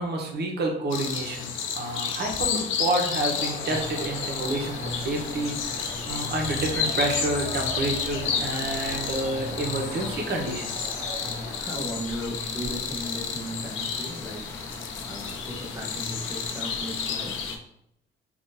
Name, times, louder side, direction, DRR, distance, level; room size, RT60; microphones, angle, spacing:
voice 1, 0.0-10.9, right 2 dB, 55° right, 1 dB, 0.9 m, -29 dB
sound 1, 0.9-17.6, left 6 dB, 80° left, 0.5 m, -32 dB
Crowd, 3.4-11.6, left 1 dB, 45° left, 1.2 m, -40 dB
sound 2, 3.7-17.6, left 2 dB, 15° left, 0.5 m, -40 dB
voice 2, 11.5-14.4 15.0-17.3, equal, 10° right, -3 dB, 1.0 m, -36 dB
3.6 x 2.5 x 2.6 m, 0.76 s
cardioid pair, 90°, 20 cm